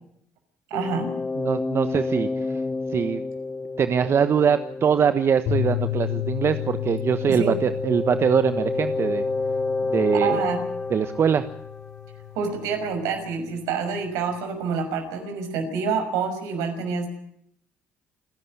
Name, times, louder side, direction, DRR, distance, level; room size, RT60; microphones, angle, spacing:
sound 1, 0.7-12.3, left 3 dB, 25° left, 1.3 m, -30 dB
voice 1, 0.7-1.1 7.3-7.5 10.1-10.6 12.3-17.1, right 5 dB, 75° right, 6 dB, 5.9 m, -27 dB
voice 2, 1.4-2.3 2.9-3.2 3.8-9.2 9.9-10.4 10.9-11.4, right 7 dB, 45° right, 11 dB, 1.2 m, -22 dB
sound 2, 5.5-13.9, left 14 dB, 70° left, 3.8 m, -33 dB
28.5 x 11.0 x 9.6 m, 0.71 s
hypercardioid pair, 60°, 6 cm